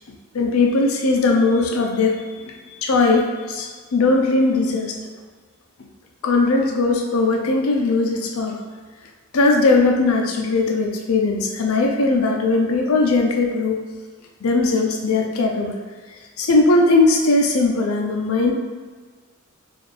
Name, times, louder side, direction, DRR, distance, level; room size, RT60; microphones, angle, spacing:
voice 1, 0.3-2.2 2.7-5.0 6.2-8.6 9.3-13.8 14.4-15.8 16.4-18.5, left 3 dB, 70° left, 1 dB, 0.5 m, -19 dB
4.3 x 2.4 x 3.3 m, 1.5 s
head